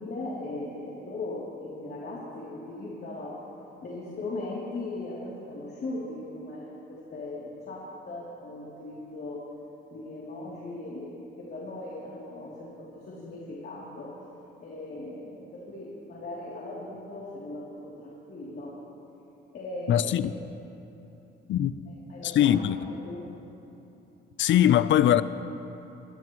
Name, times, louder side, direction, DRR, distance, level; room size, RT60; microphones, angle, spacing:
voice 1, 0.0-3.3 3.8-9.4 9.9-14.1 14.6-18.8 19.5-20.1 21.9-22.5 22.9-23.3, left 2 dB, 55° left, 3.0 m, -38 dB
voice 2, 19.9-20.3 21.5-21.7 22.2-22.8 24.4-25.2, left 11 dB, 70° left, 0.6 m, -21 dB
23.0 x 16.0 x 3.1 m
cardioid pair, 90°, 20 cm